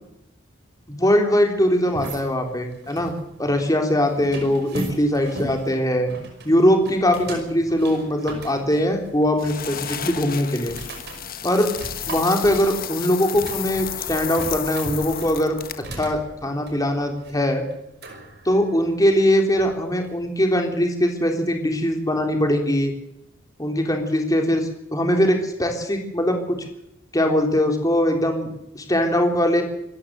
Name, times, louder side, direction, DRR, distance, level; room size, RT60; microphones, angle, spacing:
voice 1, 0.9-3.1 3.4-6.1 6.4-10.8 11.4-11.7 12.1-15.6 15.9-17.6 18.5-22.9 23.6-26.6 27.1-28.5 28.7-29.6, equal, 20° left, 3 dB, 3.6 m, -21 dB
sound 1, 1.8-20.3, right 1 dB, 55° right, 5.5 m, -38 dB
sound 2, 9.4-16.0, left 9 dB, 45° left, 1.4 m, -32 dB
26.5 x 14.0 x 8.0 m, 0.81 s
head